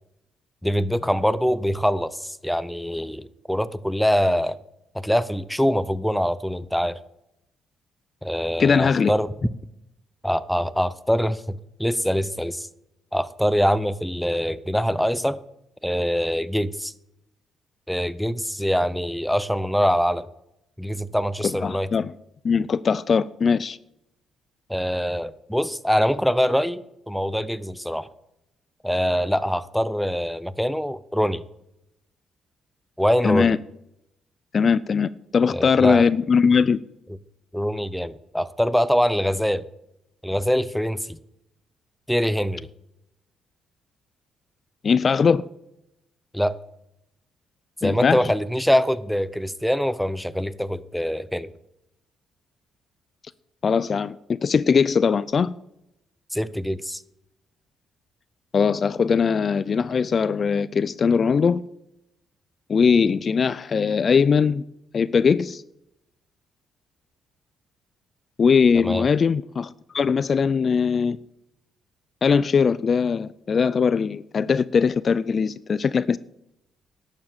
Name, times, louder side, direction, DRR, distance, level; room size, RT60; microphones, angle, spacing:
voice 1, 0.6-4.6 4.9-7.0 8.2-9.3 10.2-12.7 13.1-15.4 15.8-16.9 17.9-20.3 20.8-21.9 24.7-28.1 28.8-31.4 33.0-33.5 35.5-36.0 37.5-39.6 40.2-41.2 42.1-42.7 46.3-46.6 47.8-51.5 56.3-57.0 68.8-69.1, equal, ahead, 0.6 m, -24 dB
voice 2, 8.6-9.1 21.6-22.1 22.4-23.8 33.2-33.6 34.5-36.8 44.8-45.5 47.8-48.2 53.6-55.5 58.5-61.6 62.7-64.6 64.9-65.6 68.4-71.2 72.2-76.2, left 6 dB, 45° left, 0.4 m, -20 dB
11.5 x 7.3 x 7.3 m
cardioid pair, 90°, 0 cm